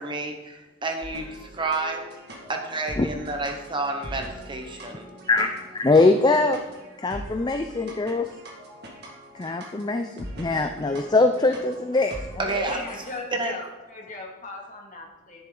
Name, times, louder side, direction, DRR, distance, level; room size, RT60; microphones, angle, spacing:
voice 1, 0.0-2.1 2.5-5.1 12.4-12.8 13.3-13.5, right 3 dB, 20° right, 4 dB, 0.8 m, -30 dB
sound 1, 1.0-13.2, equal, 50° right, 1.8 m, -42 dB
voice 2, 5.3-6.6 7.0-8.3 9.3-12.4, left 3 dB, 20° left, 6 dB, 0.4 m, -22 dB
voice 3, 12.4-13.6 13.9-15.4, left 2 dB, 35° left, 0 dB, 2.0 m, -37 dB
10.5 x 10.0 x 3.8 m, 1.2 s
head